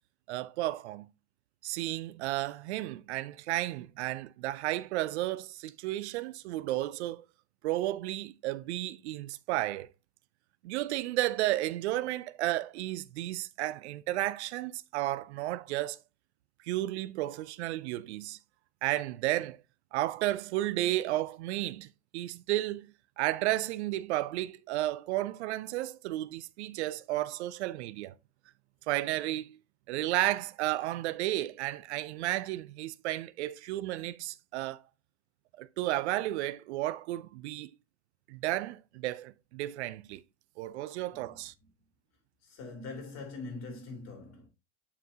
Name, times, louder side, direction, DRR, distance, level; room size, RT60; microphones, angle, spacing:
voice 1, 0.3-1.1 1.6-7.2 7.6-9.9 10.6-16.0 16.6-18.4 18.8-19.6 19.9-21.9 22.1-22.9 23.2-28.1 28.9-29.6 29.9-34.8 35.6-37.7 38.3-40.2 40.6-41.5, right 16 dB, 75° right, 0.6 m, -33 dB
voice 2, 41.1-41.5 42.4-44.5, left 3 dB, 50° left, 3.6 m, -43 dB
7.4 x 6.1 x 2.8 m
hypercardioid pair, 80°, 34 cm